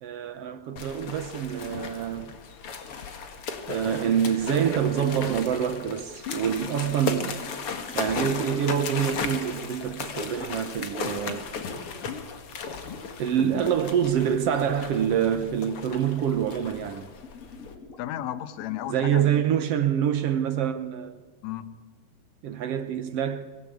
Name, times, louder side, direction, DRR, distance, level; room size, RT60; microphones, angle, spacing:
voice 1, 0.0-2.4 3.7-7.4 7.9-11.5 13.2-17.1 18.9-21.2 22.4-23.5, right 9 dB, 70° right, 1.5 m, -26 dB
sound 1, 0.8-17.8, left 5 dB, 45° left, 2.3 m, -36 dB
sound 2, 6.4-10.9 13.0-13.1 13.3-15.5 15.8-15.9 16.3-16.4 17.0-19.7, left 5 dB, 30° left, 1.7 m, -47 dB
voice 2, 18.0-19.3 21.4-21.8, left 12 dB, 65° left, 2.1 m, -34 dB
25.5 x 17.5 x 8.5 m
omnidirectional pair, 4.0 m